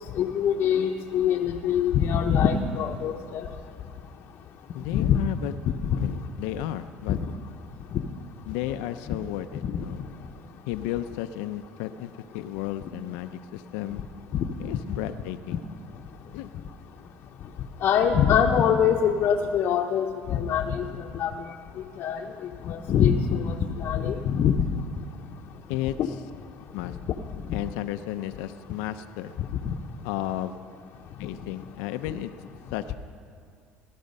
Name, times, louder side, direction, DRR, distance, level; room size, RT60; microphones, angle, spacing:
voice 1, 0.2-3.5 4.9-5.2 7.1-7.2 14.3-14.4 17.8-21.3 22.0-22.2 22.7-24.8 26.0-26.1 29.6-29.7, left 8 dB, 55° left, 1 dB, 0.8 m, -23 dB
voice 2, 4.7-5.5 6.0-7.2 8.5-10.0 10.7-14.0 14.6-15.6 16.3-16.5 25.7-26.2 26.7-27.0 27.5-29.4 30.0-30.6 31.2-32.3 32.7-33.0, left 13 dB, 85° left, 10 dB, 0.6 m, -33 dB
16.5 x 13.0 x 5.4 m, 2.3 s
supercardioid pair, 105°, 5 cm